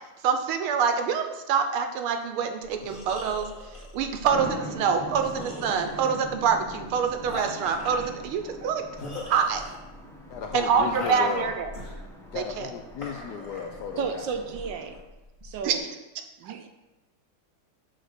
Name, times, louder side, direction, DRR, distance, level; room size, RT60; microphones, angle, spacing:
voice 1, 0.2-3.5 3.9-8.8 9.2-9.6 10.5-11.7 12.3-12.7 15.6-15.7 16.4-16.5, right 6 dB, 90° right, 6 dB, 1.7 m, -26 dB
sound 1, 2.6-15.8, left 2 dB, 25° left, 1.5 m, -41 dB
sound 2, 4.3-15.0, left 1 dB, 5° left, 0.4 m, -43 dB
voice 2, 10.3-11.5 12.3-14.3, left 6 dB, 70° left, 4 dB, 1.0 m, -34 dB
voice 3, 14.0-15.0 15.4-15.9 16.4-16.7, right 5 dB, 70° right, 6 dB, 1.2 m, -33 dB
7.6 x 4.1 x 6.4 m, 1.1 s
omnidirectional pair, 2.3 m